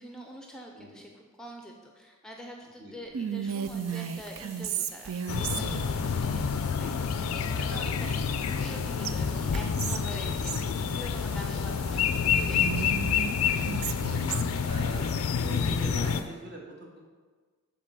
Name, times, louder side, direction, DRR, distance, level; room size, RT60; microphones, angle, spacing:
voice 1, 0.0-10.6 10.9-13.0, equal, 5° left, 1 dB, 0.5 m, -45 dB
Whispering, 3.1-6.0 8.0-8.8 9.0-9.1 9.5-10.7 12.5-14.6, right 8 dB, 75° right, 0.4 m, -34 dB
sound 1, 3.6-16.2, right 2 dB, 30° right, 1.8 m, -50 dB
sound 2, 5.3-16.2, left 6 dB, 85° left, 0.4 m, -28 dB
voice 2, 7.6-8.0 10.3-10.6 13.9-14.2 14.6-17.0, right 1 dB, 55° right, -1 dB, 1.6 m, -42 dB
7.4 x 4.0 x 6.7 m, 1.5 s
head